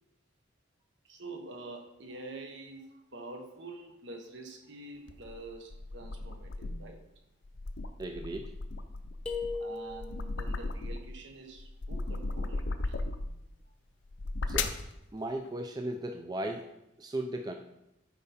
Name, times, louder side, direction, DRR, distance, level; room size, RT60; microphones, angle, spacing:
voice 1, 1.0-7.0 9.5-13.0, right 2 dB, 65° right, 5 dB, 1.1 m, -46 dB
sound 1, 5.1-7.0 7.4-11.2 11.6-13.4 14.0-14.9, left 3 dB, 65° left, 0.6 m, -36 dB
voice 2, 8.0-8.5 14.4-14.8 15.1-16.7 17.0-17.5, right 1 dB, 20° right, 5 dB, 0.4 m, -36 dB
sound 2, 9.3-10.4, left 4 dB, 5° left, 0.8 m, -37 dB
8.5 x 5.5 x 4.2 m, 0.86 s
head